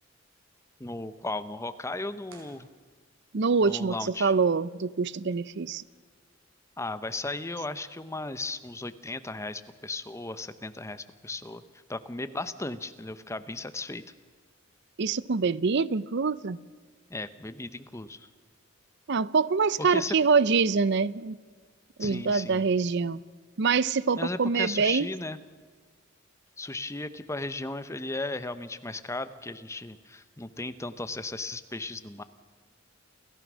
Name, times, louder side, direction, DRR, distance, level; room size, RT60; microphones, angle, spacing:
voice 1, 0.8-2.7 3.6-4.3 6.8-11.6 11.9-14.0 17.1-18.3 19.8-20.2 22.0-22.6 24.2-25.4 26.6-32.2, left 2 dB, 15° left, 0.8 m, -36 dB
sound 1, 2.2-3.4, right 3 dB, 85° right, 4.4 m, -57 dB
voice 2, 3.3-5.8 15.0-16.6 19.1-21.4 22.0-23.2 23.6-25.1, right 5 dB, 60° right, 0.6 m, -25 dB
29.0 x 14.5 x 6.2 m
head